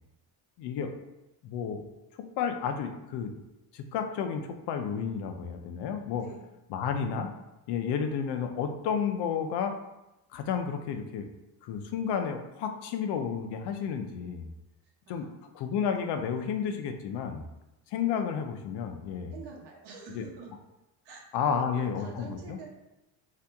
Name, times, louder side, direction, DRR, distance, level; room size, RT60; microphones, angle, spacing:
voice 1, 0.6-0.9 1.4-1.8 2.2-3.3 3.7-6.2 6.7-7.3 7.7-9.7 10.3-11.3 11.6-14.5 15.1-15.3 15.5-17.4 17.9-19.3 20.1-20.2 21.3-22.7, left 7 dB, 80° left, 6 dB, 0.5 m, -31 dB
voice 2, 19.3-20.5 21.0-22.7, right 5 dB, 85° right, -3 dB, 1.0 m, -46 dB
2.8 x 2.4 x 3.4 m, 0.97 s
cardioid pair, 140°, 40 cm